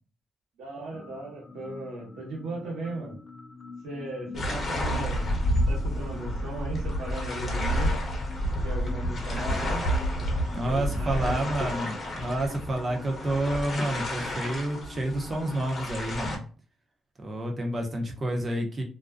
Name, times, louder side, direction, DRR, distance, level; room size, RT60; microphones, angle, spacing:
voice 1, 0.6-3.2 3.8-5.4 5.7-7.9 8.6-9.9 10.6-11.4, right 2 dB, 80° right, -2 dB, 1.0 m, -37 dB
sound 1, 0.9-15.6, left 3 dB, 25° left, 0.4 m, -46 dB
sound 2, 4.3-16.4, equal, 40° left, 0.8 m, -30 dB
voice 2, 10.5-16.4 17.2-18.8, right 1 dB, 35° right, 2 dB, 0.8 m, -29 dB
2.5 x 2.2 x 2.3 m, 0.38 s
cardioid pair, 90°, 0 cm